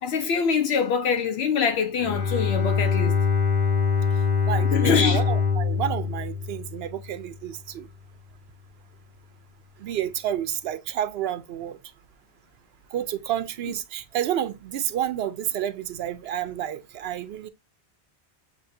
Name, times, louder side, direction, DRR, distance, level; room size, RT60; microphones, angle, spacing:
voice 1, 0.0-3.2 4.7-5.3, left 6 dB, 80° left, 0.9 m, -24 dB
Bowed string instrument, 2.0-7.2, left 5 dB, 45° left, 1.3 m, -24 dB
voice 2, 4.5-7.9 9.8-11.8 12.9-17.5, right 11 dB, 75° right, 0.8 m, -30 dB
7.1 x 2.6 x 2.6 m
omnidirectional pair, 1.1 m